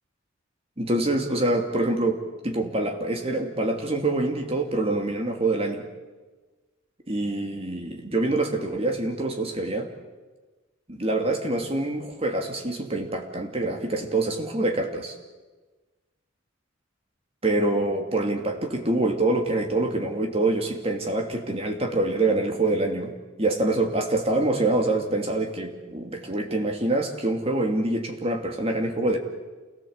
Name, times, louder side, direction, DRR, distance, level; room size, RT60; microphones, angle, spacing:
voice 1, 0.8-5.9 7.1-9.9 10.9-15.1 17.4-23.1 23.4-29.2, right 2 dB, 30° right, 3 dB, 2.7 m, -25 dB
28.0 x 18.0 x 8.1 m, 1.3 s
head